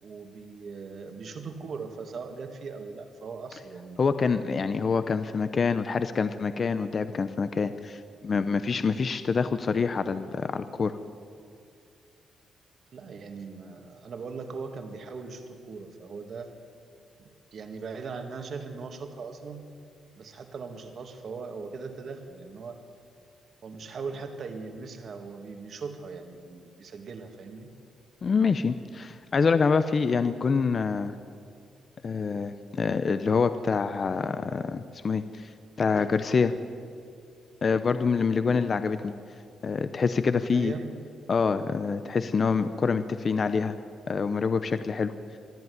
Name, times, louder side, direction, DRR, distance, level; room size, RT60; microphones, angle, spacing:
voice 1, 0.0-4.0 12.9-16.5 17.2-19.7 20.2-22.8 23.6-27.7 40.3-41.0, right 4 dB, 45° right, 6 dB, 2.0 m, -39 dB
voice 2, 4.0-10.9 28.2-31.1 32.0-35.5 35.8-36.5 37.6-39.1 39.6-40.7 41.3-43.7 44.1-45.1, left 5 dB, 30° left, 11 dB, 0.7 m, -26 dB
23.0 x 13.5 x 9.6 m, 2.3 s
cardioid pair, 165°, 0 cm